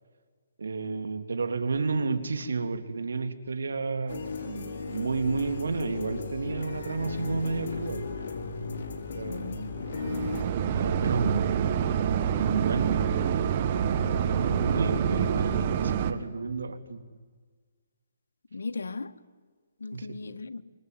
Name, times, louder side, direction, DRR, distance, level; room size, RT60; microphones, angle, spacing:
voice 1, 0.6-8.0 9.1-9.8 10.7-11.8 12.4-13.6 14.4-17.0 19.9-20.1, right 4 dB, 85° right, 2.8 m, -31 dB
sound 1, 4.1-10.4, left 4 dB, 55° left, 5.3 m, -37 dB
sound 2, 5.2-15.9, left 2 dB, 40° left, 4.7 m, -41 dB
voice 2, 9.3-10.3 18.5-19.1 19.8-20.6, left 4 dB, 85° left, 1.6 m, -37 dB
sound 3, 9.9-16.1, right 9 dB, 35° right, 1.7 m, -27 dB
25.5 x 24.0 x 9.3 m
hypercardioid pair, 160°, 0 cm